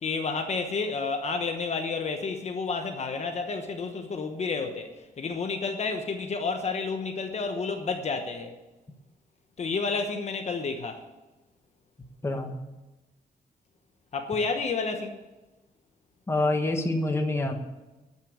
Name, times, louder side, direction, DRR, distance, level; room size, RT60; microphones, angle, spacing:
voice 1, 0.0-8.5 9.6-11.0 14.1-15.2, left 4 dB, 45° left, 1.1 m, -30 dB
voice 2, 12.2-12.6 16.3-17.6, left 2 dB, 15° left, 1.3 m, -26 dB
12.0 x 6.9 x 8.6 m
wide cardioid pair, 155°, 16 cm